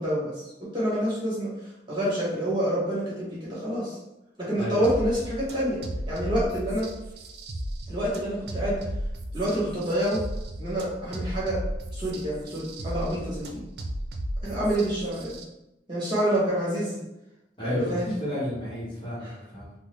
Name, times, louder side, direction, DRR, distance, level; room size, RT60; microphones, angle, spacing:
voice 1, 0.0-4.0 4.4-5.8 6.1-6.9 7.9-8.8 9.3-10.2 10.6-11.6 11.9-13.6 14.4-15.4 15.9-17.0 17.6-18.1 19.2-19.3, equal, 25° right, -8 dB, 1.3 m, -27 dB
voice 2, 4.6-4.9 17.6-19.7, left 1 dB, 30° left, -8 dB, 1.0 m, -31 dB
sound 1, 4.8-15.4, right 1 dB, 70° right, 0.5 m, -35 dB
3.7 x 2.0 x 3.1 m, 0.91 s
head